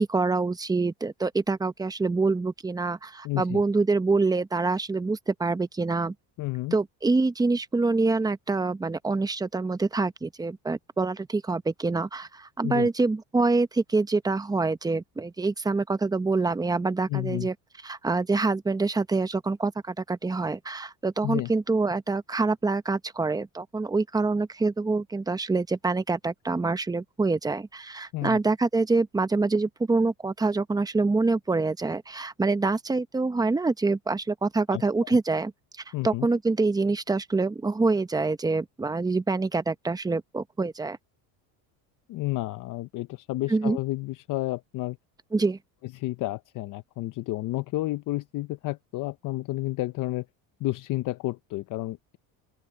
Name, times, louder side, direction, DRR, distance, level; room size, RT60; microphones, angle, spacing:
voice 1, 0.0-6.1 6.7-17.5 17.8-35.5 36.0-41.0 43.5-43.8 45.3-45.6, right 3 dB, 10° right, 0.8 m, -26 dB
voice 2, 3.2-3.6 6.4-6.8 12.6-12.9 17.1-17.5 21.2-21.5 28.1-28.4 34.7-35.2 35.9-36.3 42.1-45.0 45.8-50.3 50.6-52.2, left 18 dB, 55° left, 0.7 m, -31 dB
open air
cardioid pair, 130°, 39 cm